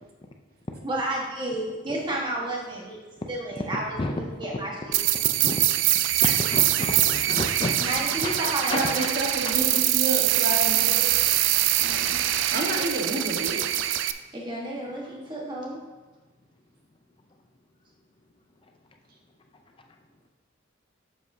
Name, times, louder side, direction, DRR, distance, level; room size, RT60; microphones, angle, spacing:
voice 1, 0.8-3.0 3.3-3.8 4.4-5.0 7.8-9.1 11.8-12.2 14.0-15.8, right 1 dB, 25° right, -3 dB, 1.4 m, -32 dB
sound 1, 4.9-14.1, right 13 dB, 70° right, 0.3 m, -23 dB
voice 2, 5.2-5.7 6.2-9.1 9.4-9.5 11.8-11.9 12.2-12.3, left 2 dB, 25° left, 3 dB, 0.5 m, -32 dB
voice 3, 8.7-11.2 12.5-13.8, right 2 dB, 50° right, 0 dB, 1.2 m, -29 dB
7.8 x 7.1 x 2.7 m, 1.2 s
head